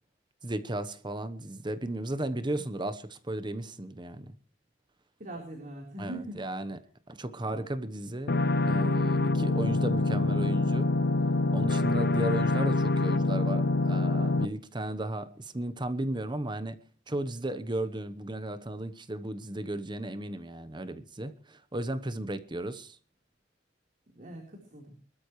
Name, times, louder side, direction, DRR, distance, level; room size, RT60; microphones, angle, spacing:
voice 1, 0.4-4.3 6.0-6.8 7.1-8.3 8.6-10.9 11.5-16.8 17.1-23.0, right 1 dB, 25° right, 1.0 m, -35 dB
voice 2, 5.2-6.4 7.5-7.7 9.4-9.8 24.1-24.9, right 1 dB, 45° right, 4.0 m, -42 dB
sound 1, 8.3-14.4, left 2 dB, 55° left, 0.7 m, -26 dB
24.0 x 13.5 x 3.2 m
head